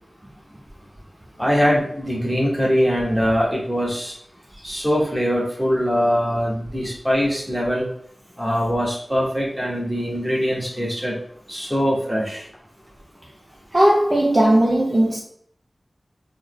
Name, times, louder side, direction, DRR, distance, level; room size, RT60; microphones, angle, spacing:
voice 1, 1.4-4.1 4.6-7.9 8.4-11.2 11.5-12.4, equal, 5° right, 1.3 m, -22 dB
voice 2, 13.7-15.2, right 1 dB, 35° right, 0.5 m, -17 dB
3.4 x 2.0 x 3.6 m
wide cardioid pair, 60°, 0 cm